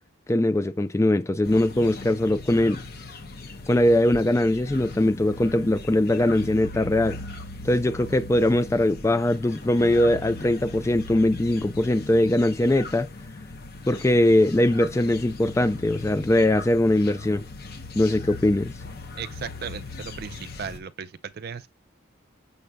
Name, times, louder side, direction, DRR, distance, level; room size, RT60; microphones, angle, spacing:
voice 1, 0.3-2.8 3.7-7.2 7.6-13.1 13.9-17.5 18.0-18.7, left 1 dB, 15° left, 0.3 m, -21 dB
sound 1, 1.4-20.8, left 3 dB, 50° left, 0.8 m, -39 dB
voice 2, 19.2-21.7, right 6 dB, 50° right, 0.4 m, -36 dB
6.7 x 6.5 x 2.2 m
head